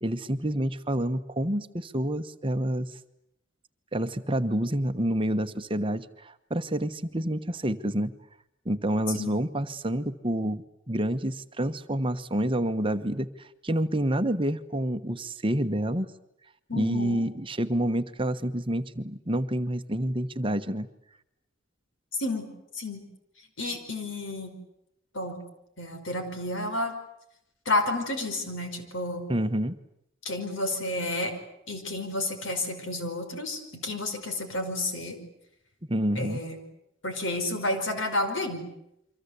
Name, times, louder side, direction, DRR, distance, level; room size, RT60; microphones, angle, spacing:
voice 1, 0.0-2.9 3.9-8.1 8.6-16.1 16.7-20.9 29.3-29.8 35.9-36.4, right 1 dB, 25° right, 9 dB, 1.1 m, -28 dB
voice 2, 16.7-17.2 22.2-22.5 22.7-23.0 23.6-24.5 25.1-25.4 25.8-26.9 27.7-29.3 30.3-31.3 31.7-35.2 36.2-36.6 37.0-38.7, left 2 dB, 75° left, 6 dB, 5.3 m, -31 dB
28.5 x 25.0 x 8.4 m, 0.82 s
head